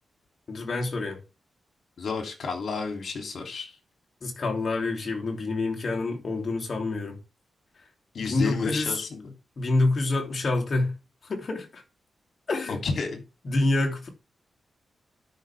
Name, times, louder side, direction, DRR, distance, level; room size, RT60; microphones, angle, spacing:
voice 1, 0.5-1.2 4.2-7.2 8.2-9.0 9.6-10.9 11.3-11.8 12.5-12.8 13.4-14.1, left 2 dB, 50° left, 3.1 m, -27 dB
voice 2, 2.0-3.7 8.1-9.3 12.7-13.2, left 4 dB, 65° left, 3.2 m, -31 dB
13.0 x 6.0 x 3.6 m
cardioid pair, 105°, 0 cm